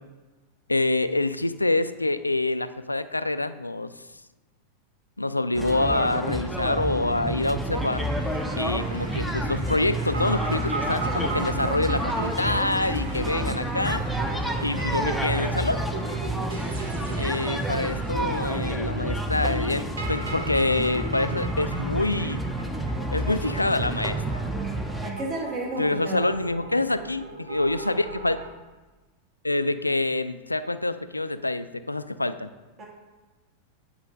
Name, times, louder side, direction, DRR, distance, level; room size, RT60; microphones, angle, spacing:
voice 1, 0.7-3.9 5.2-8.1 8.6-14.0 14.6-15.8 17.2-22.4 23.1-24.4 25.8-28.4 29.4-32.5, left 2 dB, 85° left, 13 dB, 0.3 m, -26 dB
sound 1, 5.5-25.1, right 1 dB, ahead, 0.7 m, -29 dB
sound 2, 7.7-18.5 20.4-20.5 20.8-21.1 25.1-25.3, right 1 dB, 85° right, 1.2 m, -45 dB
sound 3, 10.0-28.5, right 3 dB, 70° right, 1.0 m, -38 dB
voice 2, 25.0-26.3 32.8-32.9, right 2 dB, 30° right, -3 dB, 2.0 m, -32 dB
8.4 x 4.7 x 5.1 m, 1.2 s
figure-of-eight pair, 90°, 0 cm